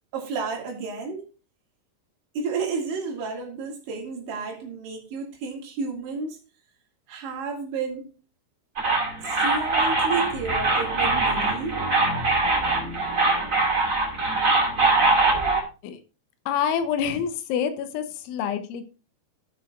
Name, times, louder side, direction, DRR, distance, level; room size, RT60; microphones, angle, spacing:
voice 1, 0.1-1.2 2.4-6.4 7.1-8.1 9.2-11.8, right 4 dB, 75° right, 4.4 m, -31 dB
sound 1, 8.8-15.6, right 3 dB, 25° right, 1.7 m, -22 dB
voice 2, 16.5-18.8, left 8 dB, 90° left, 3.3 m, -27 dB
17.5 x 6.0 x 2.4 m
omnidirectional pair, 5.3 m